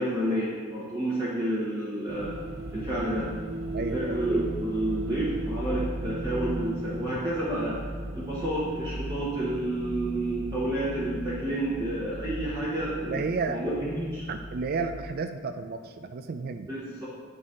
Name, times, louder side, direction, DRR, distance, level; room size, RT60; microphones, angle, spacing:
voice 1, 0.0-2.3 2.7-3.3 3.9-7.8 8.1-13.2 13.5-14.2 16.7-17.0, right 1 dB, 20° right, -9 dB, 1.0 m, -30 dB
sound 1, 2.1-15.0, right 1 dB, 60° right, 0.8 m, -36 dB
voice 2, 13.1-13.6 14.3-16.7, right 4 dB, 45° right, 8 dB, 0.3 m, -32 dB
9.1 x 4.0 x 3.7 m, 1.6 s
head